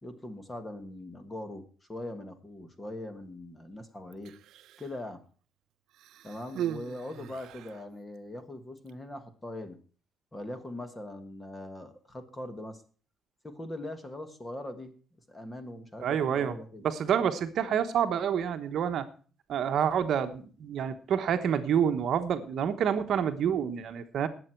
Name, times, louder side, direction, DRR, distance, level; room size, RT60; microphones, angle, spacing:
voice 1, 0.0-4.3 4.8-5.2 6.2-9.8 10.3-12.8 13.4-14.9 15.3-16.8, left 1 dB, 10° left, 9 dB, 1.5 m, -41 dB
Human voice, 4.1-5.0 5.9-7.9 8.8-8.9, right 11 dB, 65° right, 0.7 m, -39 dB
voice 2, 16.0-16.6 16.8-19.0 19.5-24.3, right 8 dB, 50° right, 8 dB, 1.1 m, -28 dB
19.0 x 8.0 x 4.5 m, 0.40 s
cardioid pair, 170°, 0 cm